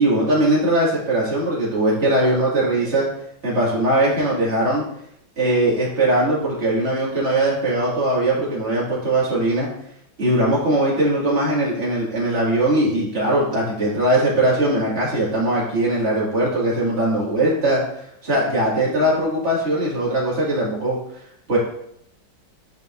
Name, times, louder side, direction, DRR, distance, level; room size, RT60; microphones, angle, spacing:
voice 1, 0.0-3.1 3.4-4.8 5.4-9.7 10.2-17.8 18.2-21.0 21.5-21.6, right 1 dB, 35° right, -6 dB, 2.4 m, -20 dB
9.0 x 5.2 x 2.6 m, 0.74 s
omnidirectional pair, 2.1 m